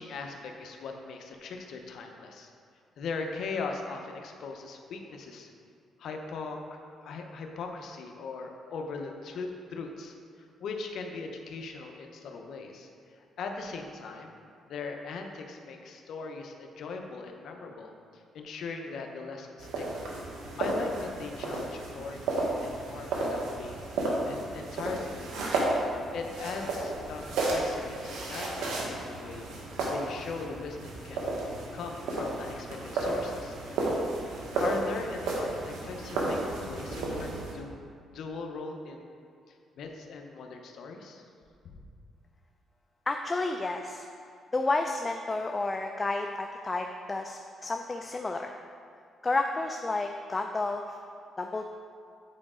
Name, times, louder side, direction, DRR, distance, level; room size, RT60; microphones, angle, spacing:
voice 1, 0.0-2.5 3.0-5.5 6.0-12.9 13.2-14.4 14.7-19.9 20.3-23.9 24.2-25.5 26.1-31.3 31.7-33.9 34.6-37.7 38.1-39.1 39.5-41.2 41.6-41.8, left 4 dB, 70° left, 3 dB, 0.8 m, -40 dB
sound 1, 19.6-37.5, right 2 dB, 90° right, 1.2 m, -33 dB
voice 2, 43.1-44.1 44.5-48.6 49.2-51.0 51.4-51.6, left 3 dB, 25° left, 4 dB, 0.4 m, -31 dB
8.6 x 4.9 x 3.7 m, 2.3 s
cardioid pair, 90°, 0 cm